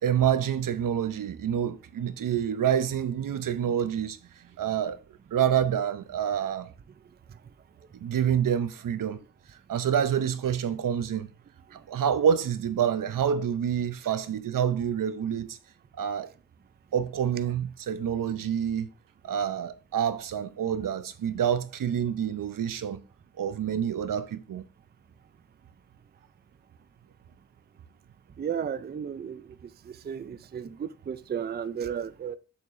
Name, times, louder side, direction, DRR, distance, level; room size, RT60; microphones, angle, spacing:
voice 1, 0.0-4.2 4.6-5.0 5.3-6.7 7.9-9.2 9.7-11.3 11.7-15.6 16.0-16.3 16.9-18.9 19.2-23.0 23.4-24.7, right 8 dB, 85° right, 0.7 m, -27 dB
voice 2, 28.4-29.4 29.9-32.4, right 8 dB, 30° right, 0.4 m, -34 dB
7.0 x 6.6 x 2.6 m
wide cardioid pair, 155°, 32 cm